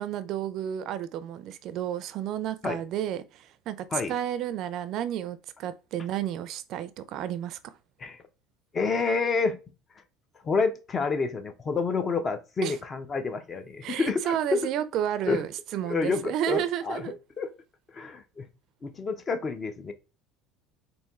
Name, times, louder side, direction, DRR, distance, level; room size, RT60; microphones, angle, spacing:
voice 1, 0.0-7.6 12.6-12.8 13.8-17.2, right 10 dB, 50° right, 0.4 m, -31 dB
voice 2, 8.7-9.6 10.4-14.4 15.3-15.4 15.8-17.0 17.4-17.5 17.9-18.5 18.8-19.9, left 4 dB, 25° left, 0.6 m, -28 dB
4.2 x 2.6 x 3.5 m
cardioid pair, 140°, 0 cm